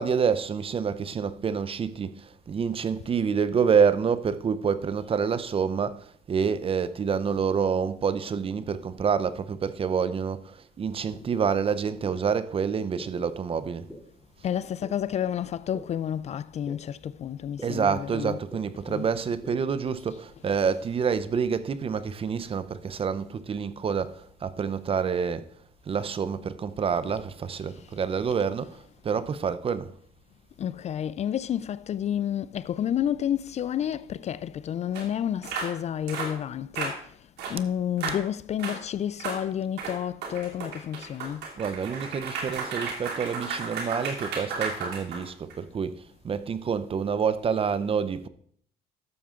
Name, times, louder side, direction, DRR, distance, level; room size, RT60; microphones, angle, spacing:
voice 1, 0.0-13.9 17.6-25.4 25.9-28.8 29.0-29.9 41.6-48.3, right 6 dB, 35° right, 0.6 m, -27 dB
sound 1, 11.1-11.2 12.0-12.1 13.0-13.1 13.9-14.0 14.8-14.9 15.7-15.8 16.7-16.8 17.6-17.7 18.5-18.6 19.4-19.5, left 1 dB, 5° left, 2.8 m, -41 dB
voice 2, 14.4-18.4 18.9-19.1 27.1-27.2 27.7-27.9 30.6-37.2 37.5-41.5, left 10 dB, 40° left, 0.4 m, -30 dB
sound 2, 34.9-35.0 35.4-35.7 36.1-36.3 36.7-37.0 37.4-37.6 38.0-38.2 38.6-38.8 39.2-39.4 39.8-45.5, right 4 dB, 75° right, 2.7 m, -34 dB
12.5 x 7.0 x 3.7 m
cardioid pair, 110°, 17 cm